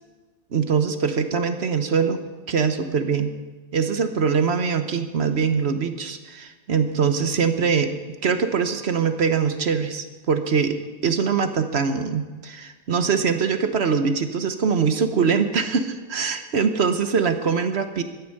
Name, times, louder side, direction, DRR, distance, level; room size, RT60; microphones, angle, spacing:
voice 1, 0.5-2.2 2.5-3.3 3.7-7.9 8.2-10.8 11.0-18.0, right 6 dB, 55° right, 8 dB, 1.2 m, -23 dB
14.5 x 10.5 x 6.5 m, 1.3 s
omnidirectional pair, 1.4 m